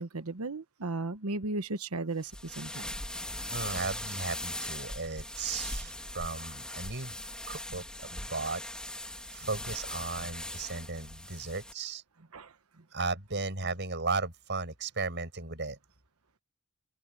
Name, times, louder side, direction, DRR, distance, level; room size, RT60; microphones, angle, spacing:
voice 1, 0.0-2.9 12.3-12.5, right 2 dB, 80° right, 1.2 m, -35 dB
sound 1, 2.2-11.7, left 1 dB, 5° left, 2.3 m, -40 dB
voice 2, 3.5-7.1 7.5-8.6 9.3-12.0 12.9-15.8, right 3 dB, 50° right, 7.6 m, -35 dB
head